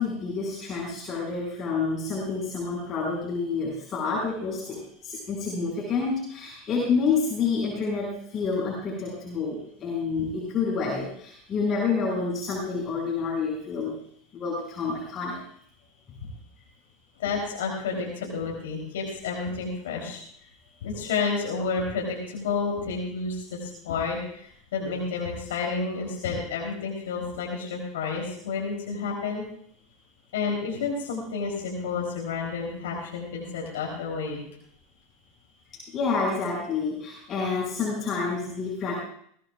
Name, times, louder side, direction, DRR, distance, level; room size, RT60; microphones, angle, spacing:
voice 1, 0.0-13.9 14.3-15.4 35.9-38.9, left 4 dB, 35° left, -4 dB, 5.5 m, -28 dB
voice 2, 17.2-20.2 20.8-29.4 30.3-34.4, left 4 dB, 75° left, -1 dB, 3.6 m, -30 dB
22.0 x 17.0 x 2.5 m, 0.66 s
hypercardioid pair, 90°, 0 cm